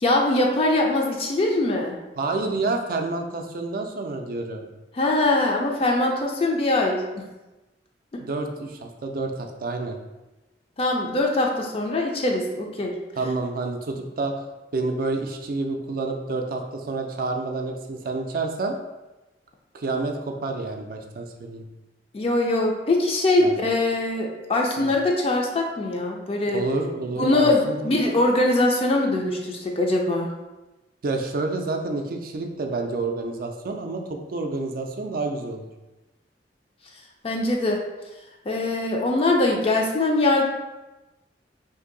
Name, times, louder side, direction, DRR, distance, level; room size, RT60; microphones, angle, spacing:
voice 1, 0.0-2.0 4.9-7.3 8.1-8.2 10.8-12.9 22.1-26.6 27.2-30.3 37.2-37.8 38.5-40.5, left 2 dB, 35° left, 1 dB, 0.4 m, -22 dB
voice 2, 2.2-4.7 8.2-10.0 13.2-14.3 14.7-18.7 19.7-21.7 23.4-23.5 24.8-24.9 26.4-28.2 31.0-35.7, right 3 dB, 55° right, 4 dB, 0.4 m, -29 dB
2.6 x 2.6 x 3.8 m, 1.1 s
head